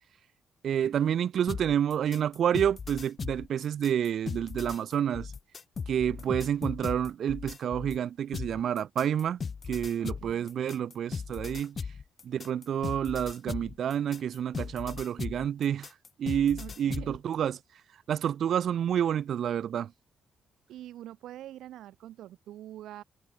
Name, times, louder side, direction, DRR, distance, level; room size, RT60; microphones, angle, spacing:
voice 1, 0.6-5.3 5.9-9.4 9.7-11.8 12.2-15.9 16.2-17.6 18.1-19.9, right 9 dB, 65° right, 1.7 m, -29 dB
sound 1, 1.5-8.0 8.3-17.2, left 5 dB, 40° left, 1.2 m, -38 dB
voice 2, 10.0-10.6 16.6-17.2 20.7-23.0, right 13 dB, 80° right, 5.7 m, -45 dB
cardioid pair, 90°, 0 cm